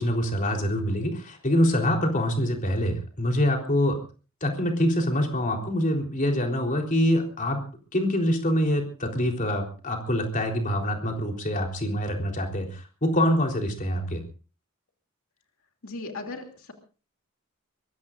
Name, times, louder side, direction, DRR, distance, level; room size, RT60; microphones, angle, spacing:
voice 1, 0.0-4.0 4.4-7.6 7.9-14.2, equal, 40° left, 2 dB, 3.9 m, -25 dB
voice 2, 15.8-16.7, left 3 dB, 75° left, 3 dB, 2.8 m, -37 dB
23.5 x 22.0 x 2.6 m, 0.37 s
head